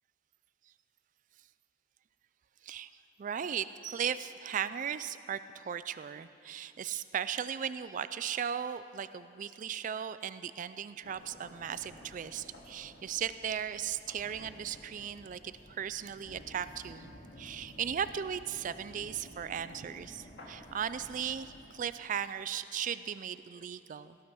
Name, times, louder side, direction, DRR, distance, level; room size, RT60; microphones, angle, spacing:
voice 1, 3.2-17.1 17.4-24.2, right 8 dB, 45° right, 14 dB, 0.3 m, -37 dB
sound 1, 11.0-21.7, left 1 dB, 70° left, 2.0 m, -53 dB
18.0 x 12.5 x 6.0 m, 2.9 s
head